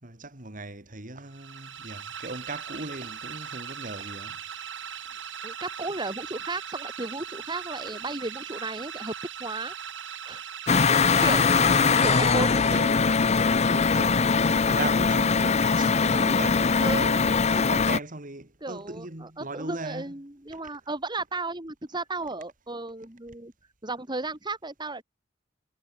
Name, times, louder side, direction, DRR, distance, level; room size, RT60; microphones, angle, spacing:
voice 1, 0.0-4.4 11.2-12.2 12.7-13.2 13.7-20.1, right 2 dB, 45° right, 3.3 m, -38 dB
sound 1, 1.3-13.2, right 8 dB, 70° right, 5.2 m, -39 dB
voice 2, 5.4-9.1 9.4-9.7 10.3-10.4 11.2-12.7 16.8-17.2 18.6-23.5 23.8-25.0, right 2 dB, 25° right, 2.5 m, -34 dB
sound 2, 10.7-18.0, left 5 dB, 35° left, 0.6 m, -22 dB
head